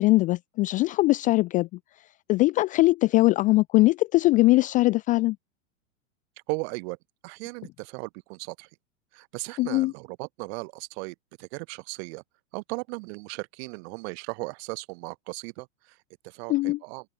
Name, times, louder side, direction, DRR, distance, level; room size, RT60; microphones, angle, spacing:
voice 1, 0.0-1.7 2.3-5.4 9.6-9.9 16.5-16.8, left 19 dB, 20° left, 0.4 m, -21 dB
voice 2, 6.5-7.0 7.2-8.7 9.1-12.2 12.5-16.0 16.2-17.0, right 30 dB, 50° right, 6.4 m, -37 dB
open air
hypercardioid pair, 120°, 40 cm